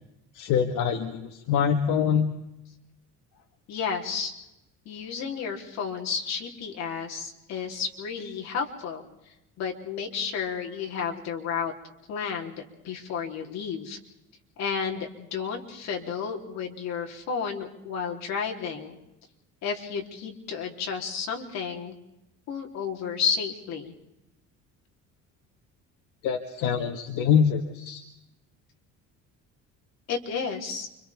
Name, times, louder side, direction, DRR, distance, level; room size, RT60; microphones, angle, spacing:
voice 1, 0.3-2.3 26.2-28.0, left 7 dB, 75° left, 5 dB, 1.7 m, -24 dB
voice 2, 3.7-4.3 4.9-9.1 9.6-11.7 12.1-14.0 14.6-19.0 19.6-21.9 22.5-23.9 30.1-30.9, left 6 dB, 55° left, 0 dB, 3.6 m, -32 dB
29.5 x 26.0 x 3.6 m, 0.93 s
cardioid pair, 165°, 31 cm